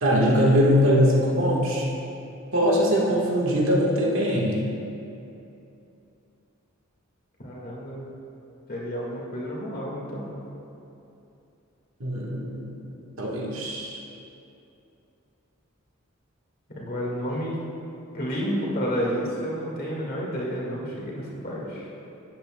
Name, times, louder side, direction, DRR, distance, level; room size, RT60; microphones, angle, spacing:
voice 1, 0.0-1.9 2.5-4.6 12.0-12.7 13.2-14.0, equal, 80° right, -3 dB, 1.4 m, -22 dB
voice 2, 7.4-8.2 8.7-10.4 16.7-17.6 18.1-21.9, equal, 45° left, -4 dB, 1.8 m, -30 dB
12.0 x 8.7 x 2.2 m, 2.8 s
head